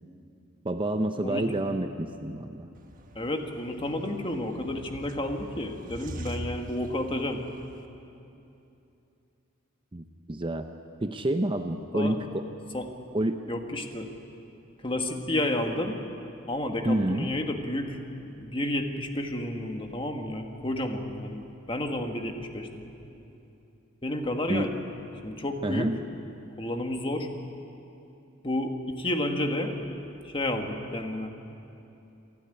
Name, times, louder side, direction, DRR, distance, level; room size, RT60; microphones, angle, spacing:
voice 1, 0.6-2.7 9.9-10.7 11.0-12.5 13.1-13.4 16.8-17.3 24.5-24.7 25.6-26.0, right 1 dB, 25° right, 7 dB, 0.7 m, -28 dB
sound 1, 2.7-7.9, equal, 40° right, 1.3 m, -43 dB
voice 2, 3.1-7.4 11.9-12.2 12.7-12.9 13.5-14.1 14.8-16.0 16.5-18.0 18.4-22.8 24.0-24.7 25.2-25.9 26.6-27.3 28.4-29.7 30.2-31.3, left 1 dB, 25° left, 4 dB, 1.6 m, -31 dB
28.5 x 11.5 x 9.9 m, 2.8 s
head